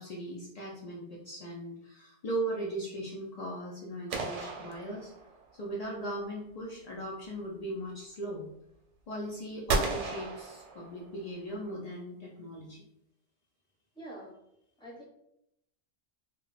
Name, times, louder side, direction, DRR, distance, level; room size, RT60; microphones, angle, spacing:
voice 1, 0.0-5.1 5.5-8.5 9.1-12.8, right 1 dB, 65° left, -3 dB, 0.4 m, -38 dB
sound 1, 4.1-5.6 9.7-11.3, right 3 dB, 90° right, 0.9 m, -34 dB
voice 2, 13.9-14.4 14.8-15.1, right 1 dB, 5° left, -6 dB, 0.8 m, -45 dB
2.1 x 2.1 x 3.8 m, 0.81 s
omnidirectional pair, 1.2 m